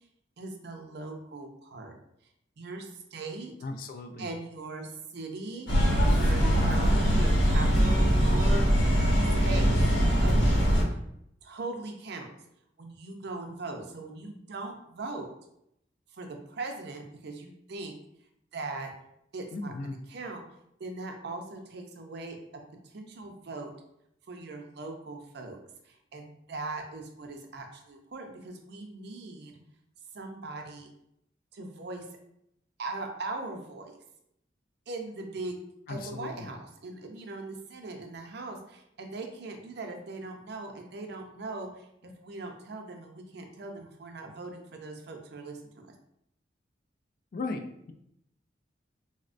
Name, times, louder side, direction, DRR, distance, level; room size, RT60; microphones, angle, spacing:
voice 1, 0.4-1.9 2.6-3.5 4.2-5.7 6.1-8.7 9.4-9.7 10.1-10.7 11.4-12.3 12.8-15.3 16.1-18.0 18.5-18.9 19.3-19.7 20.1-20.4 20.8-22.4 22.8-23.7 24.3-25.6 25.8-29.5 30.1-30.9 31.5-32.0 32.8-33.9 34.9-35.6 35.9-45.9, right 3 dB, 60° right, 3 dB, 0.5 m, -40 dB
voice 2, 3.6-4.3 19.5-20.0 35.9-36.5 47.3-47.6, left 3 dB, 50° left, 6 dB, 0.3 m, -36 dB
sound 1, 5.7-10.8, equal, 70° left, 0.8 m, -22 dB
4.0 x 2.1 x 2.5 m, 0.77 s
head